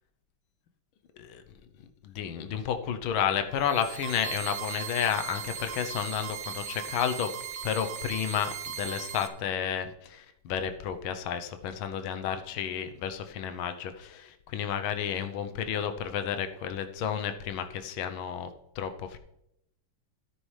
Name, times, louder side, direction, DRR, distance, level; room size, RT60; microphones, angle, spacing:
voice 1, 2.0-7.3 7.6-18.5 18.8-19.2, left 8 dB, 80° left, 8 dB, 1.6 m, -31 dB
sound 1, 3.5-9.3, right 8 dB, 80° right, 1.6 m, -38 dB
13.0 x 9.9 x 3.3 m, 0.80 s
omnidirectional pair, 2.2 m